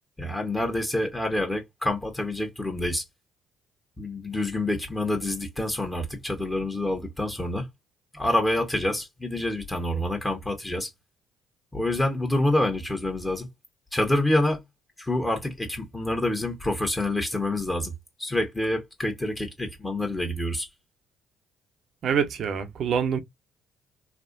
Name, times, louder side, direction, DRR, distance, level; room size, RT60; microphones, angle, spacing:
voice 1, 0.2-3.0 4.0-7.7 8.1-10.9 11.7-13.5 13.9-14.6 15.0-17.9 18.2-20.7, left 1 dB, 15° left, 1.4 m, -27 dB
voice 2, 22.0-23.2, right 7 dB, 60° right, 0.9 m, -25 dB
3.3 x 2.4 x 2.6 m
hypercardioid pair, 55°, 0 cm